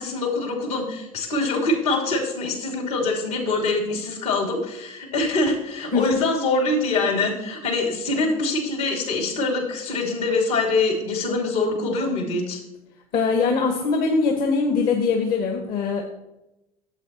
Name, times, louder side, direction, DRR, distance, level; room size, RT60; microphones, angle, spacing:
voice 1, 0.0-12.6, left 3 dB, 75° left, -1 dB, 2.9 m, -24 dB
voice 2, 13.1-16.1, left 4 dB, 50° left, 2 dB, 1.3 m, -22 dB
13.0 x 8.0 x 2.8 m, 0.94 s
hypercardioid pair, 65°, 19 cm